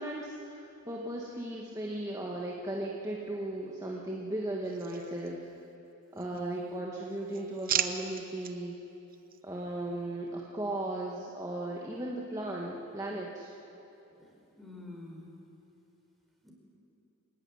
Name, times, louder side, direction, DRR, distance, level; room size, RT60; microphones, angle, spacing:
voice 1, 0.0-5.5 6.1-8.8 9.4-13.5, right 1 dB, 15° right, -3 dB, 1.8 m, -36 dB
sound 1, 4.6-5.7 6.1-6.8 7.1-8.5 9.1-9.4, right 9 dB, 40° right, 1.0 m, -36 dB
voice 2, 6.1-6.6 14.1-15.3 16.4-16.5, left 2 dB, ahead, -1 dB, 4.6 m, -48 dB
26.0 x 17.0 x 9.9 m, 2.9 s
head